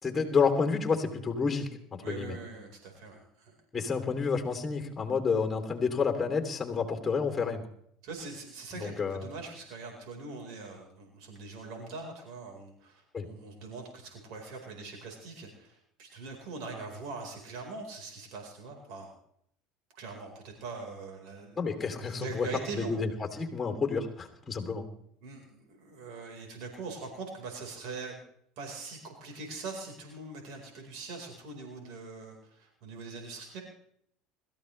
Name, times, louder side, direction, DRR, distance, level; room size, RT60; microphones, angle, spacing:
voice 1, 0.0-2.3 3.7-7.6 8.8-9.2 13.1-13.3 21.6-22.5 22.7-23.1 23.4-24.9, left 5 dB, 15° left, 4 dB, 3.1 m, -29 dB
voice 2, 2.0-3.5 8.0-19.1 19.9-23.0 25.2-28.2 28.6-33.6, right 4 dB, 65° right, 1 dB, 4.5 m, -42 dB
22.0 x 14.0 x 3.3 m, 0.68 s
supercardioid pair, 95°, 0 cm